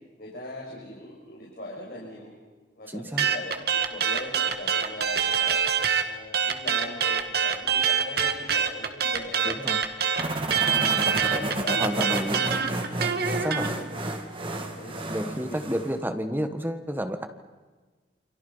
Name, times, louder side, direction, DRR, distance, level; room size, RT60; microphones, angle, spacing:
voice 1, 0.2-2.3 2.8-5.6 6.0-9.6 10.0-10.1 10.6-12.2 13.6-13.9 14.4-15.7, left 1 dB, 55° left, -4 dB, 6.0 m, -40 dB
voice 2, 2.9-3.3 9.4-9.8 11.8-12.5 13.3-13.7 15.0-17.3, equal, 10° right, 8 dB, 1.5 m, -30 dB
sound 1, 3.2-6.0 6.3-13.7, right 7 dB, 55° right, 2.1 m, -25 dB
sound 2, 10.2-16.0, right 1 dB, 30° right, 2.6 m, -31 dB
29.0 x 27.0 x 5.7 m, 1.4 s
head